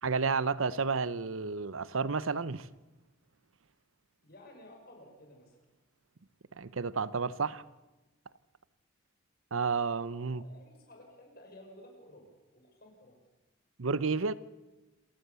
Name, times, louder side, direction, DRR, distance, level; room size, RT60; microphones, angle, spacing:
voice 1, 0.0-2.7 6.5-7.6 9.5-10.4 13.8-14.3, right 4 dB, 80° right, 17 dB, 0.8 m, -31 dB
voice 2, 4.2-5.6 10.4-13.2, left 1 dB, 50° left, 2 dB, 6.0 m, -54 dB
27.5 x 16.0 x 7.0 m, 1.1 s
head